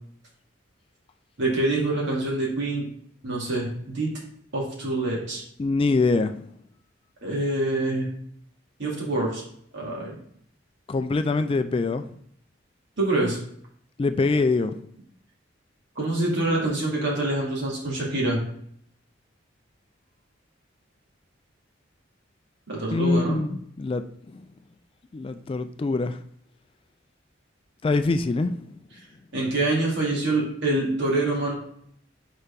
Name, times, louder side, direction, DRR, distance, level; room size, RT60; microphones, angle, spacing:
voice 1, 1.4-2.9 3.2-4.1 4.5-5.4 7.2-8.1 8.8-9.4 9.7-10.2 13.0-13.4 16.0-18.4 22.7-23.4 29.3-31.5, right 2 dB, 65° right, 2.4 m, -25 dB
voice 2, 5.6-6.4 10.9-12.1 14.0-14.8 22.9-24.0 24.3-24.4 25.1-26.2 27.8-28.6, left 3 dB, 30° left, 0.3 m, -24 dB
4.9 x 4.5 x 5.2 m
head